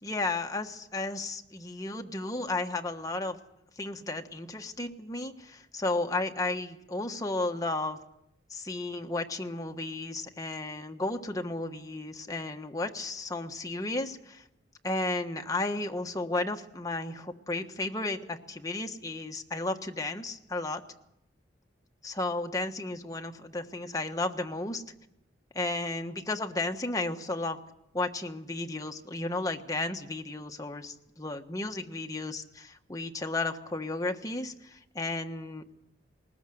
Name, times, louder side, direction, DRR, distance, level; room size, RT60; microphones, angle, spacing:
voice 1, 0.0-3.4 3.8-8.0 8.5-14.4 14.8-20.8 22.0-24.8 25.5-27.6 27.9-35.7, left 2 dB, 20° left, 4 dB, 1.4 m, -33 dB
20.0 x 20.0 x 7.8 m, 0.83 s
head